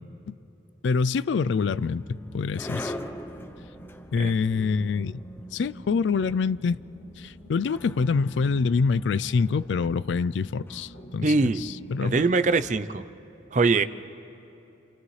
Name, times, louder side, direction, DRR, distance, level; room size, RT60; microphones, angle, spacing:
voice 1, 0.8-2.9 4.1-5.2 5.5-6.8 7.2-12.2, left 5 dB, 80° left, 0.4 m, -26 dB
sound 1, 1.4-12.5, left 1 dB, 10° left, 0.6 m, -44 dB
sound 2, 1.5-12.7, equal, 60° left, 3.1 m, -46 dB
voice 2, 11.2-11.6 12.0-13.0 13.5-13.8, right 3 dB, 40° right, 0.5 m, -22 dB
29.0 x 29.0 x 3.2 m
head